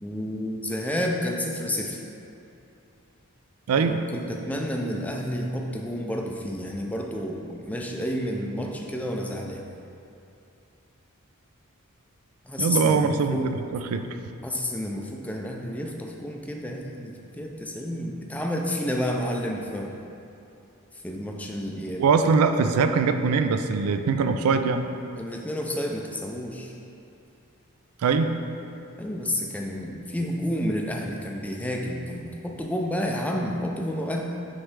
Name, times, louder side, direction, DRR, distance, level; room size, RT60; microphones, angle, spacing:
voice 1, 0.0-2.0 3.8-9.6 12.5-13.5 14.4-19.9 21.0-22.0 25.2-26.7 29.0-34.3, equal, 5° left, 1 dB, 0.4 m, -30 dB
voice 2, 3.7-4.0 12.6-14.1 22.0-24.8 28.0-28.3, right 5 dB, 80° right, 8 dB, 0.3 m, -22 dB
9.3 x 3.2 x 3.3 m, 2.7 s
head